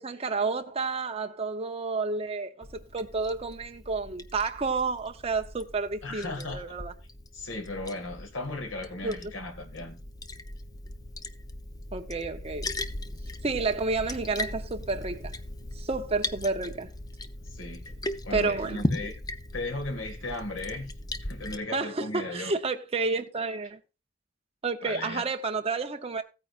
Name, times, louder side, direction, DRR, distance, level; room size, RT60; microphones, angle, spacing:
voice 1, 0.0-6.9 9.0-9.2 11.9-12.7 13.4-15.4 15.8-16.9 18.3-18.8 21.7-23.8 24.6-26.2, right 4 dB, 30° right, 0.7 m, -30 dB
Liquid, 2.6-21.6, left 1 dB, 20° left, 0.5 m, -38 dB
voice 2, 6.0-6.6 7.3-10.0 17.5-19.2 19.5-20.9 21.2-22.5 24.8-25.2, left 2 dB, 85° left, 2.0 m, -36 dB
15.0 x 9.1 x 2.5 m
head